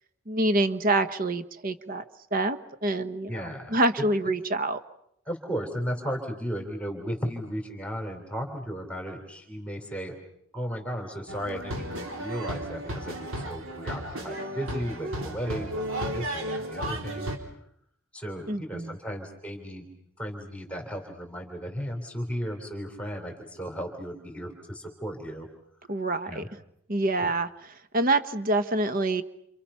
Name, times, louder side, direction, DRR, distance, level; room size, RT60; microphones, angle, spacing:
voice 1, 0.3-2.0 2.3-4.8 18.5-19.0 25.9-26.4 26.9-27.5 27.9-29.2, right 2 dB, 40° right, 11 dB, 1.2 m, -26 dB
voice 2, 3.3-3.8 5.3-10.1 10.5-17.3 18.1-19.9 20.2-25.5 26.3-26.5 27.2-27.3, equal, 5° left, 3 dB, 3.7 m, -35 dB
sound 1, 11.3-17.4, right 1 dB, 70° right, 3.9 m, -34 dB
29.0 x 28.0 x 5.8 m, 0.74 s
head